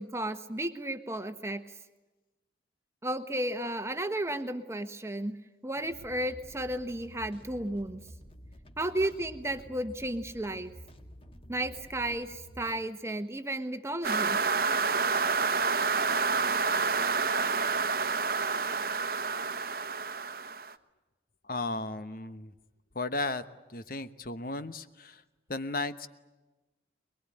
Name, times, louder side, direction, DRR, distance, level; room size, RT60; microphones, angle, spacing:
voice 1, 0.0-1.6 3.0-5.4 5.6-8.0 8.8-10.7 11.5-14.4, right 1 dB, 15° right, 9 dB, 1.2 m, -33 dB
sound 1, 5.8-12.7, equal, 30° left, 2.0 m, -50 dB
sound 2, 14.0-20.7, right 4 dB, 50° right, 1.1 m, -28 dB
voice 2, 21.4-22.5 22.9-25.2 25.5-26.1, left 2 dB, 50° left, 11 dB, 1.1 m, -35 dB
23.0 x 22.5 x 9.9 m, 1.1 s
head